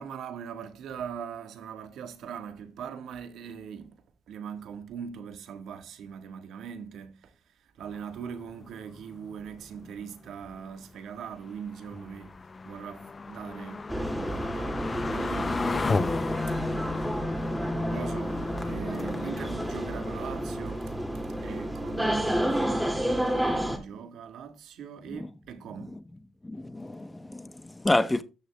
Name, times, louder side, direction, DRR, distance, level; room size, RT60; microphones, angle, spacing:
voice 1, 0.0-12.4 12.6-16.2 17.0-17.3 17.9-23.3 23.5-26.0, right 7 dB, 75° right, 1.6 m, -41 dB
sound 1, 7.8-22.0 22.3-22.4 22.8-22.9, left 3 dB, 30° left, 0.5 m, -35 dB
sound 2, 13.9-23.8, right 1 dB, 5° right, 2.5 m, -30 dB
voice 2, 26.4-28.2, left 2 dB, 15° left, 1.0 m, -29 dB
13.5 x 6.8 x 2.3 m
cardioid pair, 90°, 0 cm